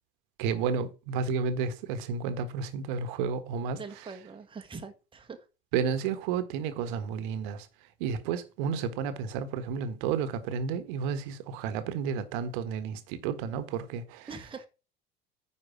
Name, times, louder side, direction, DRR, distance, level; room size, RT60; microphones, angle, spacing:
voice 1, 0.4-3.8 5.7-7.7 8.0-14.3, right 6 dB, 55° right, 1.4 m, -31 dB
voice 2, 3.7-5.5 14.3-14.7, right 5 dB, 15° right, 1.3 m, -43 dB
9.9 x 5.1 x 6.1 m
figure-of-eight pair, 65°, 30 cm